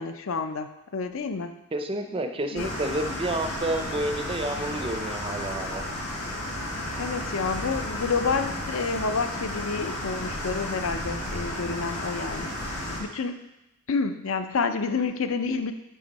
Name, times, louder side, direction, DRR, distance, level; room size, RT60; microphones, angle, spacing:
voice 1, 0.0-1.5 2.5-2.7 7.0-12.5 13.0-13.5 13.9-15.7, left 4 dB, 65° left, 9 dB, 0.5 m, -29 dB
voice 2, 1.7-5.8, right 1 dB, 25° right, 6 dB, 0.4 m, -30 dB
sound 1, 2.6-13.0, left 1 dB, 80° left, 1.6 m, -33 dB
10.5 x 3.5 x 4.1 m, 0.90 s
head